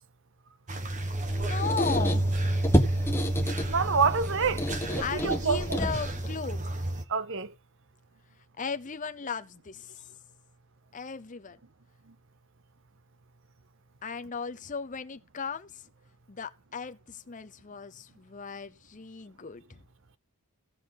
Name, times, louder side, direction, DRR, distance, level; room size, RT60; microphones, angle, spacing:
sound 1, 0.7-7.0, right 1 dB, 35° right, 1.1 m, -30 dB
Squeak, 1.1-6.3, equal, 10° left, 1.2 m, -31 dB
voice 1, 1.3-2.6 5.0-6.7 8.6-9.9 10.9-11.6 14.0-15.7 16.3-19.6, left 5 dB, 35° left, 0.7 m, -36 dB
voice 2, 3.6-5.8 7.1-7.5, right 5 dB, 55° right, 0.8 m, -27 dB
16.5 x 7.2 x 4.0 m
head